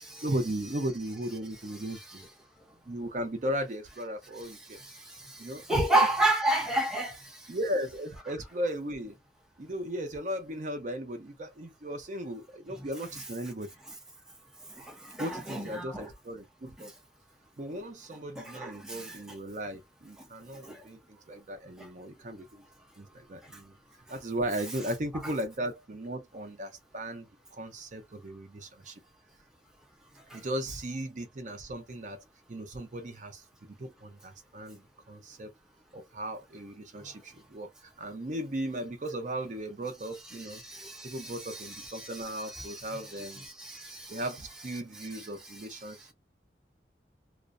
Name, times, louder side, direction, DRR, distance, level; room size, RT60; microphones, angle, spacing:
voice 1, 0.2-2.3 2.9-4.8 5.4-5.8 7.5-9.1 9.6-13.7 15.2-16.9 17.6-22.6 23.0-23.7 24.1-29.0 30.3-32.2 32.5-35.5 35.9-40.6 41.0-43.5 44.1-46.1, right 1 dB, 45° right, 0.6 m, -36 dB
voice 2, 4.7-7.5 12.7-12.9 14.7-16.1 16.8-16.9 18.4-19.2 20.2-20.3 20.6-20.9 21.8-21.9 30.3-30.4 37.0-37.1 40.5-44.2 45.0-45.3, right 2 dB, 5° right, 0.7 m, -32 dB
2.4 x 2.1 x 2.5 m
head